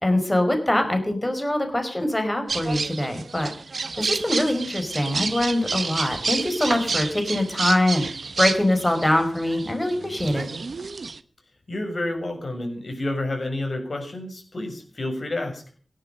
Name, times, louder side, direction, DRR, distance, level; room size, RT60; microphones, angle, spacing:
voice 1, 0.0-3.5 4.0-8.1 8.4-10.5, left 1 dB, 15° left, 5 dB, 4.8 m, -23 dB
sound 1, 2.5-11.2, right 4 dB, 70° right, 1.1 m, -30 dB
voice 2, 11.7-15.6, left 1 dB, 55° left, 3 dB, 7.0 m, -29 dB
17.0 x 12.0 x 6.8 m, 0.43 s
wide cardioid pair, 90°, 0 cm